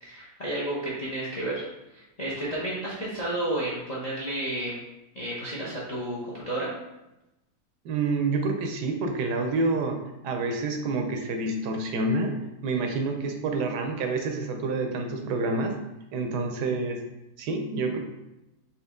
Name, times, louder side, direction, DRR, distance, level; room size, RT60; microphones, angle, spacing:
voice 1, 0.0-4.8 5.1-6.7, right 1 dB, 40° left, -6 dB, 0.5 m, -32 dB
voice 2, 7.8-15.8 16.1-17.0 17.4-18.0, right 3 dB, 75° right, 3 dB, 1.1 m, -28 dB
4.3 x 2.9 x 3.5 m, 0.95 s
omnidirectional pair, 1.9 m